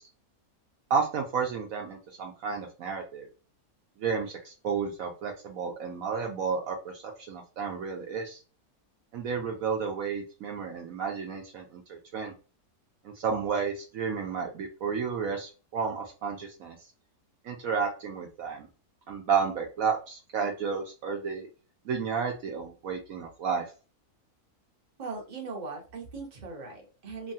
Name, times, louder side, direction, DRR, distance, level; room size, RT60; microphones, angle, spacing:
voice 1, 0.9-3.3 4.0-8.4 9.1-12.3 13.0-16.8 17.4-18.7 19.1-21.5 21.9-23.7, right 6 dB, 70° right, 2 dB, 1.0 m, -32 dB
voice 2, 25.0-27.3, right 4 dB, 35° right, 1 dB, 0.8 m, -39 dB
3.1 x 2.2 x 2.6 m, 0.33 s
omnidirectional pair, 1.6 m